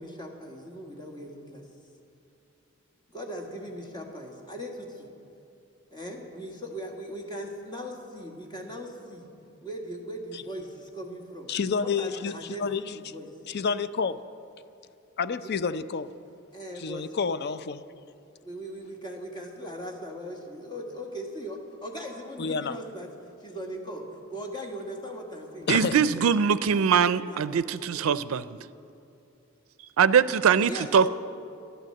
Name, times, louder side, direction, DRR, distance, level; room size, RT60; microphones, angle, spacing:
voice 1, 0.0-1.7 3.1-5.1 5.9-9.2 9.6-11.5 11.8-13.3 16.5-17.2 18.4-23.1 23.4-26.3 26.7-28.0 30.6-31.1, equal, 20° left, 1 dB, 1.7 m, -39 dB
voice 2, 11.5-13.0 13.5-14.2 15.2-16.1 16.8-17.8 22.4-22.8 25.7-26.1, left 5 dB, 55° left, 14 dB, 0.5 m, -29 dB
voice 3, 25.7-28.4 30.0-31.1, right 7 dB, 90° right, 16 dB, 0.4 m, -22 dB
12.0 x 11.0 x 7.7 m, 2.6 s
head